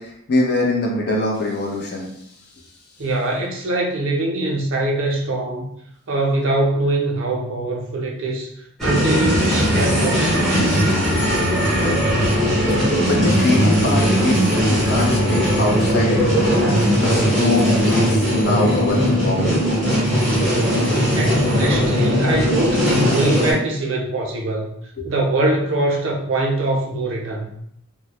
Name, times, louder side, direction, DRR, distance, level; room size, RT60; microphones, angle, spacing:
voice 1, 0.0-2.1 12.8-16.6 17.0-19.6 25.0-25.1, left 2 dB, 45° left, -1 dB, 0.5 m, -23 dB
voice 2, 3.0-5.6 6.1-8.5 8.8-10.5 21.1-24.7 25.0-27.5, right 2 dB, 60° right, -1 dB, 0.6 m, -22 dB
sound 1, 8.8-23.5, equal, ahead, 0.6 m, -18 dB
2.2 x 2.0 x 2.8 m, 0.71 s
head